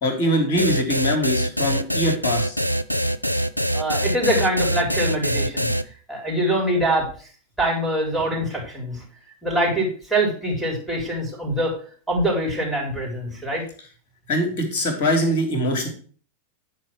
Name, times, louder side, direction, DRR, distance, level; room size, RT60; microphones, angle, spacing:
voice 1, 0.0-2.6 14.3-15.9, equal, 45° left, 4 dB, 2.8 m, -22 dB
sound 1, 0.6-5.8, equal, 90° left, 0.4 m, -23 dB
voice 2, 3.7-5.7 6.1-7.3 7.6-9.0 9.4-11.8 12.1-13.6, right 1 dB, ahead, -4 dB, 4.2 m, -24 dB
9.7 x 4.6 x 6.1 m, 0.43 s
figure-of-eight pair, 90°, 0 cm